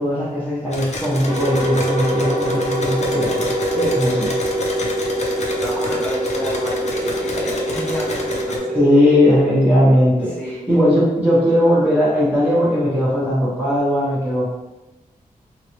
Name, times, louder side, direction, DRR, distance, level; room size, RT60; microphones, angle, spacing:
voice 1, 0.0-4.5 8.7-10.4 10.7-14.5, equal, 10° right, -10 dB, 1.0 m, -18 dB
sound 1, 0.7-8.6, left 2 dB, 50° left, 0.6 m, -30 dB
sound 2, 1.2-10.5, equal, 35° right, 0.7 m, -25 dB
voice 2, 5.1-8.8 10.4-10.6, equal, 10° left, -7 dB, 1.2 m, -29 dB
2.9 x 2.6 x 2.9 m, 1.0 s
wide cardioid pair, 100°, 15 cm